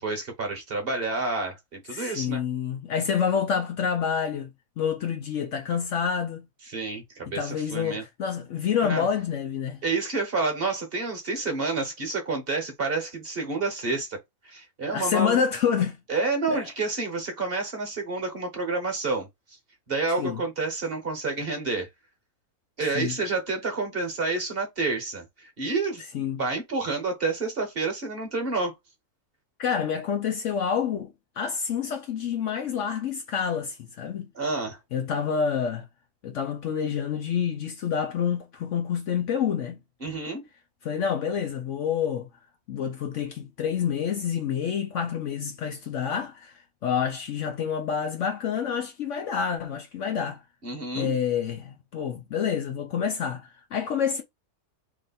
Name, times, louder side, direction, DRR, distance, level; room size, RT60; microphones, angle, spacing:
voice 1, 0.0-2.4 6.7-8.0 8.8-9.1 9.8-14.2 14.4-15.4 16.1-19.3 19.9-21.9 22.8-26.0 26.4-28.7 34.3-34.8 40.0-40.4 50.6-51.1, right 3 dB, 45° right, 1.2 m, -29 dB
voice 2, 1.9-6.5 7.3-9.8 14.9-16.0 16.5-16.6 20.2-20.4 22.9-23.1 26.1-26.4 29.6-34.3 34.9-35.9 36.2-39.8 40.8-42.3 42.7-46.5 46.8-50.4 51.0-54.2, left 7 dB, 65° left, 0.8 m, -28 dB
3.1 x 3.1 x 4.0 m
omnidirectional pair, 1.6 m